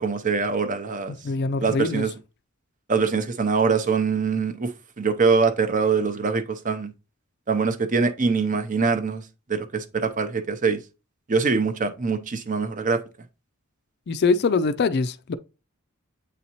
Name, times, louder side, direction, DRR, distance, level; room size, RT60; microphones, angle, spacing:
voice 1, 0.0-1.1 1.6-2.1 2.9-4.7 5.0-6.9 7.5-9.2 9.5-10.8 11.3-13.0, right 5 dB, 35° right, 0.6 m, -23 dB
voice 2, 1.2-2.1 14.1-15.3, left 4 dB, 50° left, 0.4 m, -23 dB
8.2 x 4.1 x 2.9 m
head